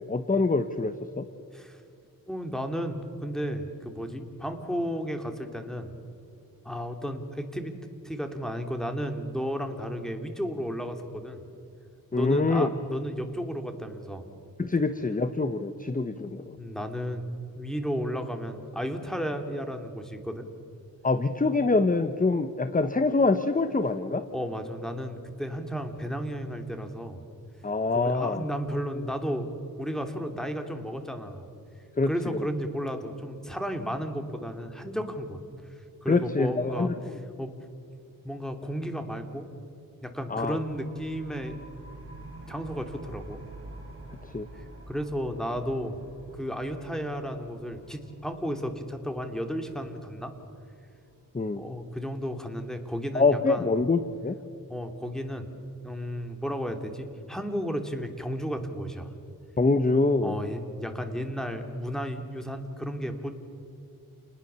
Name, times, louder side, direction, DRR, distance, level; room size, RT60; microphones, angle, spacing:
voice 1, 0.1-1.3 12.1-12.7 14.6-16.6 21.0-24.3 27.6-28.4 32.0-32.4 36.1-36.9 40.3-40.6 44.2-44.5 51.3-51.6 53.1-54.4 59.6-60.3, left 3 dB, 20° left, 10 dB, 1.1 m, -25 dB
voice 2, 2.3-5.9 6.6-11.4 12.1-14.2 16.6-20.5 24.3-27.2 27.9-29.5 29.8-31.5 32.0-35.4 36.0-36.9 37.4-37.5 38.2-39.5 40.0-41.6 42.5-43.4 44.5-46.0 46.3-50.3 51.5-53.7 54.7-55.5 55.8-59.1 60.2-63.3, equal, ahead, 6 dB, 2.9 m, -33 dB
sound 1, 40.5-51.9, right 1 dB, 35° right, 6.5 m, -48 dB
29.5 x 20.0 x 7.0 m, 2.7 s
cardioid pair, 85°, 36 cm